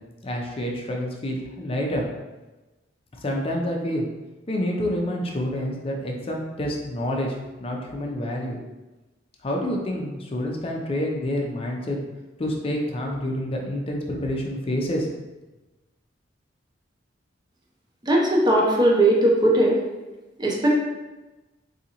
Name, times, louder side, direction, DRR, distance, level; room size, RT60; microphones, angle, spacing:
voice 1, 0.2-2.0 3.2-4.0 4.5-7.3 7.6-8.6 9.4-12.0 12.4-15.1, left 1 dB, 30° left, 0 dB, 0.5 m, -28 dB
voice 2, 18.0-19.8 20.4-20.7, right 1 dB, 25° right, -2 dB, 0.6 m, -19 dB
3.8 x 2.7 x 2.8 m, 1.1 s
head